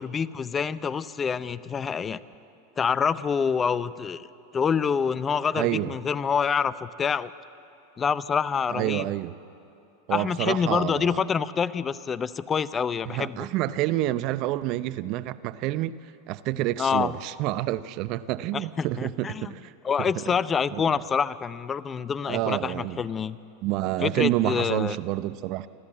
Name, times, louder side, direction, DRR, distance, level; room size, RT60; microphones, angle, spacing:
voice 1, 0.0-2.2 2.8-4.3 4.5-7.3 8.0-9.1 10.1-13.5 16.8-17.1 18.5-19.5 19.8-23.4 24.0-25.0, left 6 dB, 25° left, 0.6 m, -26 dB
voice 2, 5.5-5.9 8.7-9.3 10.1-11.2 13.1-16.0 16.3-19.7 20.0-20.3 20.7-21.0 22.3-23.0 23.6-25.7, right 15 dB, 50° right, 0.6 m, -28 dB
28.0 x 13.5 x 8.9 m
hypercardioid pair, 95°, 0 cm